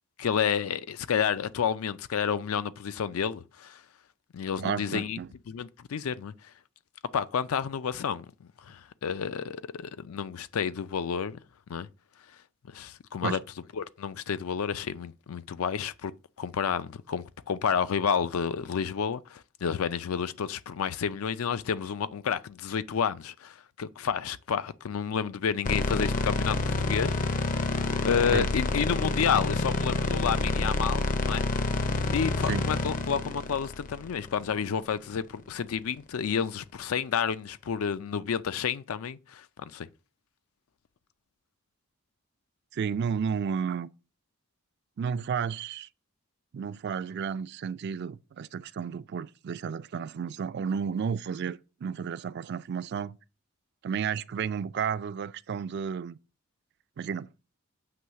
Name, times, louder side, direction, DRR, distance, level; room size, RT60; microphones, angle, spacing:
voice 1, 0.2-3.8 4.3-5.2 5.5-6.3 7.1-8.3 8.6-11.4 11.7-11.9 12.7-13.4 13.7-16.1 16.4-27.2 28.0-31.4 32.1-39.9, left 7 dB, 85° left, 0.4 m, -30 dB
voice 2, 4.6-5.3 13.2-13.4 28.3-28.5 32.5-32.7 42.7-43.9 45.0-45.9 46.5-53.2 53.8-56.2 57.0-57.3, right 6 dB, 50° right, 0.3 m, -32 dB
sound 1, 25.6-34.8, left 2 dB, 40° left, 0.5 m, -28 dB
7.7 x 3.1 x 5.7 m
head